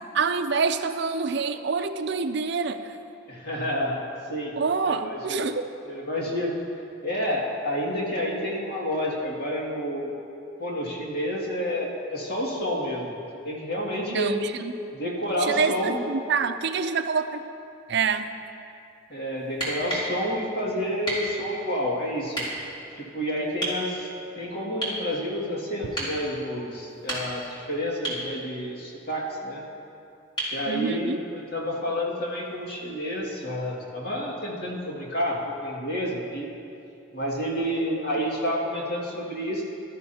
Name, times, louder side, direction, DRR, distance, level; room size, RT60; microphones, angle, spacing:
voice 1, 0.1-3.0 4.5-5.6 14.1-14.7 15.4-17.4 17.9-18.3 30.7-31.2, right 5 dB, 55° right, 8 dB, 0.5 m, -26 dB
voice 2, 3.3-4.5 4.8-5.5 5.8-6.5 7.0-10.1 10.6-13.1 13.4-14.3 14.9-16.0 19.1-22.4 22.9-24.1 24.4-29.6 30.5-36.5 37.1-39.6, equal, 50° left, -3 dB, 2.2 m, -29 dB
sound 1, 19.5-20.1 21.1-21.3 22.3-22.5 23.6-23.8 24.8-25.0 26.0-26.2 26.9-27.5 28.0-28.3 30.4-30.6 32.5-32.6, right 1 dB, 25° left, 3.0 m, -30 dB
17.5 x 13.0 x 2.8 m, 2.6 s
head